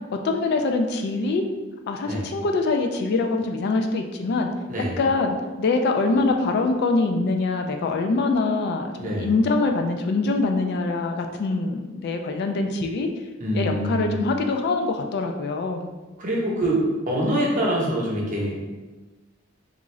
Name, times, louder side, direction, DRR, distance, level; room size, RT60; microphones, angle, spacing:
voice 1, 0.1-1.5 1.9-4.5 5.0-13.1 13.5-15.9, left 3 dB, 55° left, 5 dB, 0.3 m, -24 dB
voice 2, 9.0-9.3 13.4-14.2 16.2-18.6, right 1 dB, 40° right, -3 dB, 0.8 m, -25 dB
3.5 x 2.5 x 3.1 m, 1.2 s
head